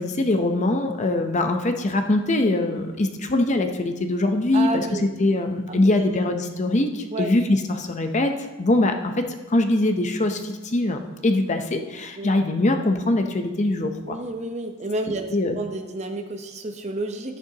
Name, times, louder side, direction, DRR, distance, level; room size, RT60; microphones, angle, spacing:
voice 1, 0.0-4.9 5.2-8.3 8.6-14.2 15.3-15.6, left 2 dB, 30° left, 6 dB, 0.6 m, -22 dB
voice 2, 4.5-5.1 5.7-5.8 6.1-6.3 7.1-7.3 12.2-12.3 14.1-17.4, right 2 dB, 30° right, 6 dB, 0.7 m, -30 dB
12.0 x 10.5 x 2.8 m, 1.2 s
head